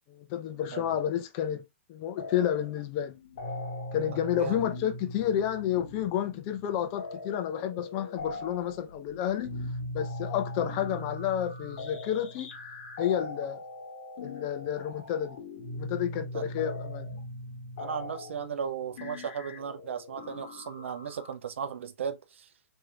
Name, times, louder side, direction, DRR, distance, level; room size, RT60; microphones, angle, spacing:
voice 1, 0.1-3.1 3.9-9.5 9.9-12.5 13.0-13.6 14.2-15.4 15.7-17.1, left 10 dB, 35° left, 0.5 m, -30 dB
sound 1, 2.2-2.8 3.1-21.3, left 2 dB, 50° left, 1.0 m, -40 dB
voice 2, 17.8-22.5, right 7 dB, 65° right, 0.5 m, -36 dB
3.1 x 2.7 x 2.3 m
hypercardioid pair, 130°, 7 cm